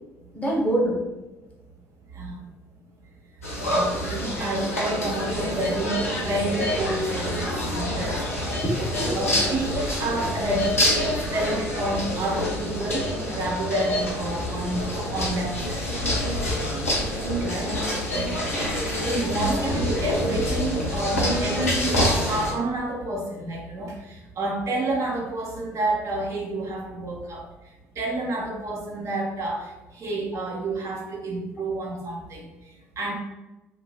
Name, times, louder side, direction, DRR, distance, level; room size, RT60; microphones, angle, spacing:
voice 1, 0.3-1.0 7.4-7.6 8.5-9.5 18.5-18.8, right 1 dB, 20° left, -3 dB, 1.0 m, -27 dB
voice 2, 2.1-2.5 3.6-8.2 9.1-15.9 17.4-17.8 18.1-18.4 18.9-33.1, right 2 dB, 45° right, -1 dB, 0.5 m, -29 dB
sound 1, 3.4-22.5, equal, 85° left, 0.5 m, -26 dB
2.9 x 2.1 x 2.7 m, 1.1 s
figure-of-eight pair, 50°, 7 cm